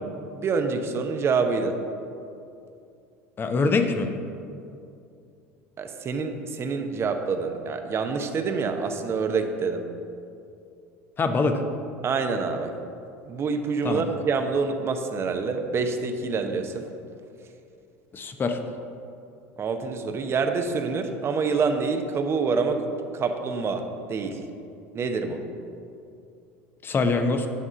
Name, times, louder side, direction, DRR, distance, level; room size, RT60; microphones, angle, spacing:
voice 1, 0.4-1.8 5.8-9.8 12.0-12.7 13.2-16.9 19.6-22.8 23.1-24.4 24.9-25.4, right 4 dB, 35° right, 6 dB, 0.8 m, -26 dB
voice 2, 3.4-4.1 11.2-11.6 13.8-14.0 18.1-18.6 26.8-27.5, left 3 dB, 30° left, 7 dB, 0.8 m, -24 dB
8.5 x 3.7 x 6.6 m, 2.6 s
hypercardioid pair, 80°, 7 cm